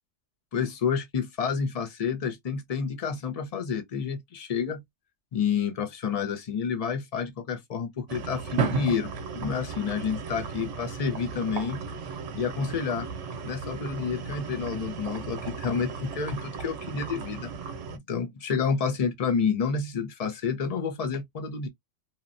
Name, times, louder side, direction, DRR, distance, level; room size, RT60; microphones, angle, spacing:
voice 1, 0.5-4.8 5.3-11.8 12.3-13.1 13.4-17.5 17.9-21.7, left 6 dB, 45° left, 0.5 m, -29 dB
sound 1, 8.1-18.0, right 5 dB, 85° right, 0.9 m, -35 dB
2.9 x 2.1 x 2.5 m
omnidirectional pair, 1.2 m